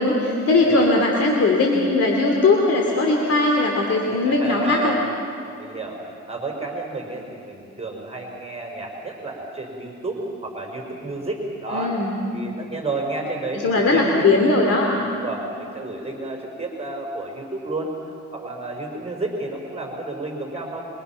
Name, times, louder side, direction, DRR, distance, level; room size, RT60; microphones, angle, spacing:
voice 1, 0.0-4.9 11.7-12.2 13.6-14.9, left 2 dB, 50° left, 0 dB, 3.0 m, -19 dB
voice 2, 4.2-5.0 5.6-12.0 12.3-14.4 14.9-18.0 18.3-20.9, right 2 dB, 20° right, 1 dB, 4.8 m, -31 dB
27.0 x 24.0 x 5.8 m, 2.7 s
cardioid pair, 90°, 30 cm